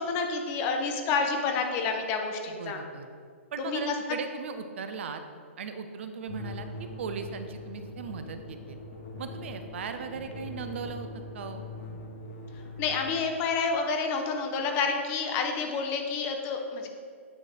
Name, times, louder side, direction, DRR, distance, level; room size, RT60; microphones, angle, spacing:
voice 1, 0.0-2.8 3.6-3.9 12.8-16.9, left 4 dB, 30° left, 4 dB, 0.8 m, -29 dB
voice 2, 2.5-3.1 3.5-5.2 5.6-8.8 9.2-11.1 11.3-11.6, right 6 dB, 60° right, 8 dB, 0.5 m, -38 dB
sound 1, 6.3-13.1, left 2 dB, 60° left, 1.0 m, -42 dB
8.6 x 3.2 x 4.1 m, 2.1 s
hypercardioid pair, 125°, 7 cm